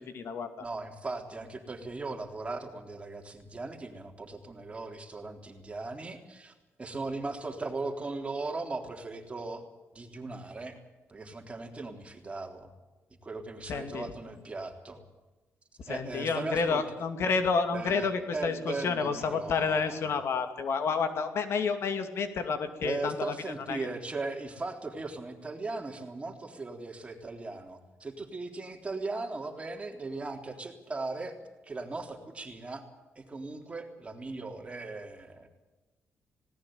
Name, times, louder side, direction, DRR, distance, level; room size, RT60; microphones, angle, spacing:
voice 1, 0.0-0.5 13.7-14.1 15.8-23.3 23.7-23.9, left 5 dB, 70° left, 8 dB, 2.5 m, -30 dB
voice 2, 0.6-6.5 6.8-9.6 9.9-10.8 11.1-12.7 13.2-15.0 15.9-16.8 17.7-20.1 22.8-31.3 31.7-32.8 33.2-35.5, right 3 dB, 25° right, 3 dB, 3.6 m, -38 dB
19.5 x 18.0 x 8.9 m, 1.1 s
cardioid pair, 105°, 5 cm